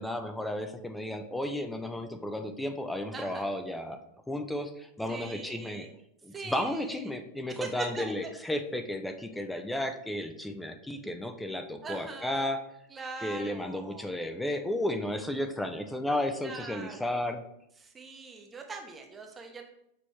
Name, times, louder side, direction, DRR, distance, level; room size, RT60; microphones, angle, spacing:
voice 1, 0.0-4.0 4.3-5.9 6.2-12.6 13.2-17.4, left 1 dB, 5° left, 7 dB, 0.4 m, -33 dB
voice 2, 3.1-3.5 5.1-5.9 6.3-7.1 7.5-8.3 11.8-12.5 12.9-14.1 16.4-17.2 17.8-19.7, right 4 dB, 20° right, 4 dB, 0.8 m, -42 dB
6.3 x 3.0 x 2.8 m, 0.80 s
hypercardioid pair, 110°, 0 cm